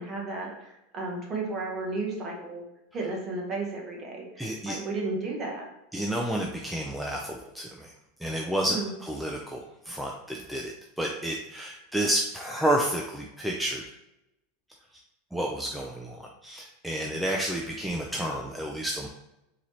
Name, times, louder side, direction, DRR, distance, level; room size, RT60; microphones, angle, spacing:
voice 1, 0.0-2.6 2.9-5.6 8.7-8.9, right 3 dB, 25° right, -1 dB, 0.9 m, -33 dB
voice 2, 4.4-4.8 5.9-7.9 8.2-13.8 15.3-19.1, right 1 dB, ahead, -1 dB, 0.3 m, -30 dB
3.9 x 2.8 x 3.0 m, 0.89 s
supercardioid pair, 155°, 0 cm